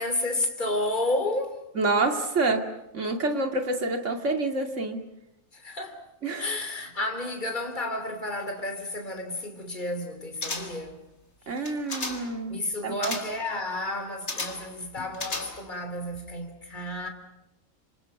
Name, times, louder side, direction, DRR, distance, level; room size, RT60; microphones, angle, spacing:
voice 1, 0.0-1.6 5.5-6.0 6.4-11.0 12.5-17.1, left 2 dB, 35° left, 3.3 m, -31 dB
voice 2, 1.7-5.0 6.2-6.5 11.5-12.6 12.8-13.2, right 3 dB, 60° right, 2.7 m, -27 dB
sound 1, 10.4-10.9 11.6-12.4 13.0-13.4 14.3-14.7 15.1-15.8 16.1-16.2, left 3 dB, 55° left, 2.9 m, -34 dB
29.5 x 27.0 x 5.9 m
omnidirectional pair, 1.4 m